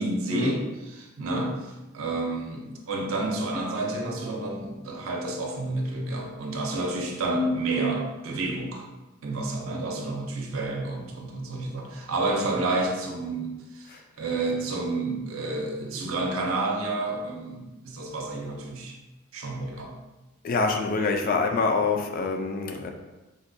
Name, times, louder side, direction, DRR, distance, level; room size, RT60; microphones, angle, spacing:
voice 1, 0.0-8.8 9.2-19.0 19.3-19.9, right 2 dB, 80° right, 1 dB, 0.6 m, -30 dB
voice 2, 20.4-22.9, left 4 dB, 45° left, 4 dB, 0.3 m, -25 dB
3.8 x 2.2 x 2.5 m, 1.1 s
head